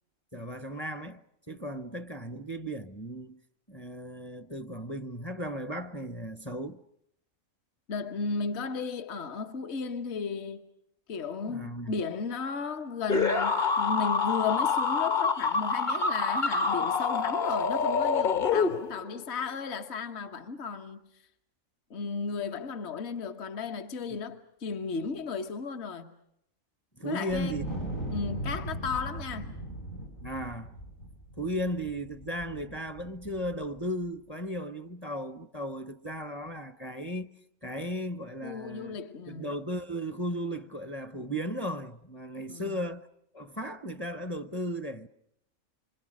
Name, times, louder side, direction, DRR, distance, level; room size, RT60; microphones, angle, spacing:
voice 1, 0.3-1.2 1.5-3.4 3.7-6.8 11.5-12.0 24.1-24.2 27.0-27.8 30.2-30.7 31.4-37.3 37.6-39.0 39.3-43.1 43.3-45.1, equal, 20° left, 0.9 m, -36 dB
voice 2, 7.9-10.7 11.1-21.0 21.9-26.1 27.0-27.6 28.1-29.5 38.4-39.5 42.5-42.8, left 5 dB, 55° left, 1.4 m, -35 dB
sound 1, 13.1-19.1, left 5 dB, 40° left, 1.2 m, -26 dB
Wind, 27.3-33.8, right 1 dB, 75° left, 5.5 m, -39 dB
27.0 x 25.5 x 6.3 m
omnidirectional pair, 1.4 m